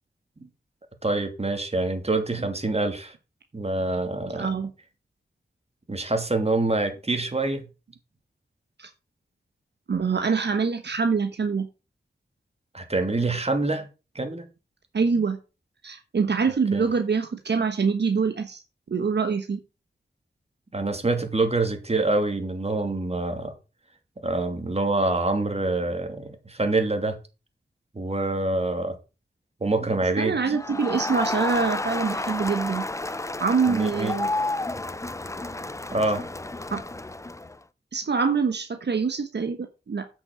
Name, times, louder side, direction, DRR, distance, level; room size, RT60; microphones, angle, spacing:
voice 1, 1.0-3.1 3.5-4.6 5.9-7.6 12.7-13.9 14.1-14.5 16.7-16.8 20.7-23.5 24.2-27.2 27.9-29.0 29.6-30.5 33.7-34.1 35.9-36.2, right 2 dB, 35° right, 2.7 m, -26 dB
voice 2, 4.4-4.7 8.8-8.9 9.9-11.7 14.9-15.4 15.8-18.6 18.9-19.6 30.2-32.8 33.4-34.3 36.7-36.8 37.9-40.1, right 5 dB, 70° right, 1.3 m, -25 dB
Crowd, 30.5-37.6, left 2 dB, 15° left, 0.6 m, -31 dB
8.8 x 6.3 x 6.3 m
cardioid pair, 45°, 18 cm